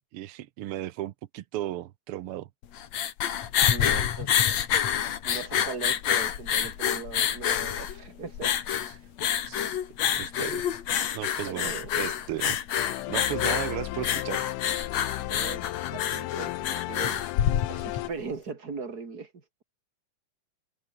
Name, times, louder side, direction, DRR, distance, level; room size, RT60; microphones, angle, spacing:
voice 1, 0.0-2.5 8.8-8.9 9.5-9.8 10.1-10.7 11.1-12.6 13.1-14.4, right 14 dB, 85° right, 1.2 m, -35 dB
sound 1, 2.6-18.1, left 9 dB, 60° left, 2.8 m, -27 dB
voice 2, 3.6-4.5 5.2-8.5 11.4-11.9 15.3-17.2 17.7-19.6, right 4 dB, 30° right, 3.3 m, -39 dB
sound 2, 12.8-18.1, left 20 dB, 85° left, 2.1 m, -35 dB
omnidirectional pair, 3.7 m